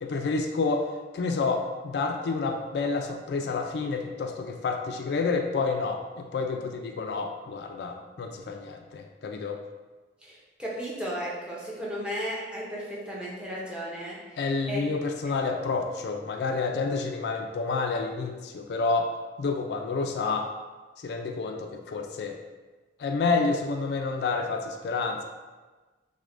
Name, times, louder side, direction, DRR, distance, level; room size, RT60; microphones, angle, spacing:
voice 1, 0.0-0.9 1.1-9.6 14.4-19.1 19.4-20.5 21.0-22.4 23.0-25.2, left 4 dB, 65° left, 4 dB, 0.3 m, -29 dB
voice 2, 10.2-14.4 14.7-14.8, equal, 5° right, -6 dB, 0.6 m, -35 dB
6.1 x 2.1 x 2.5 m, 1.3 s
head